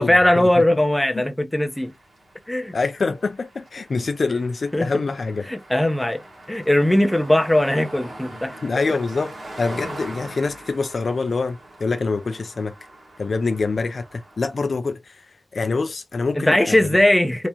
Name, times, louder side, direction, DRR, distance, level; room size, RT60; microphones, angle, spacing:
voice 1, 0.0-1.9 2.5-2.7 4.7-4.9 5.4-8.6 16.3-17.5, left 1 dB, 10° left, 0.8 m, -19 dB
sound 1, 1.7-14.7, right 1 dB, 70° right, 1.6 m, -42 dB
voice 2, 2.7-5.5 8.6-12.7 13.2-15.2 15.5-16.8, left 4 dB, 60° left, 0.5 m, -25 dB
3.5 x 2.9 x 2.9 m
wide cardioid pair, 80°, 0 cm